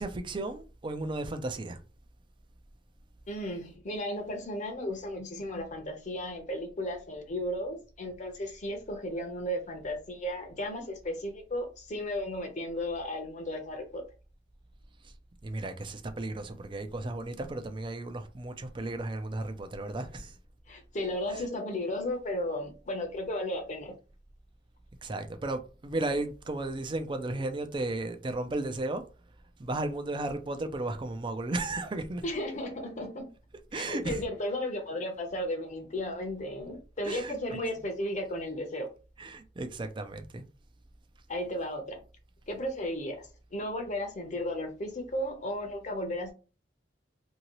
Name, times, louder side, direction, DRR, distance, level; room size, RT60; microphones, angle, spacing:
voice 1, 0.0-1.8 15.4-20.3 21.3-21.5 25.0-29.0 29.6-32.2 33.7-34.3 37.0-37.6 39.2-40.5, right 2 dB, 25° right, 0.4 m, -34 dB
voice 2, 3.3-14.0 20.7-23.9 32.2-33.3 33.7-38.9 41.3-42.0 42.5-46.3, left 1 dB, 40° left, 0.7 m, -34 dB
2.8 x 2.7 x 3.0 m
head